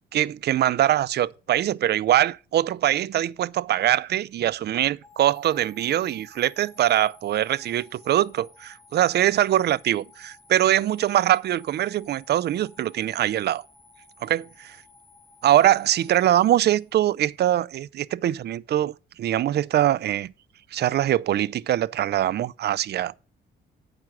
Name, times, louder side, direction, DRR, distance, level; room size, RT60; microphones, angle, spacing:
voice 1, 0.1-13.6 14.2-14.8 15.4-20.3 20.7-23.2, right 12 dB, 55° right, 0.4 m, -23 dB
sound 1, 5.0-17.2, left 3 dB, 10° left, 1.3 m, -54 dB
7.8 x 5.9 x 6.0 m
cardioid pair, 90°, 20 cm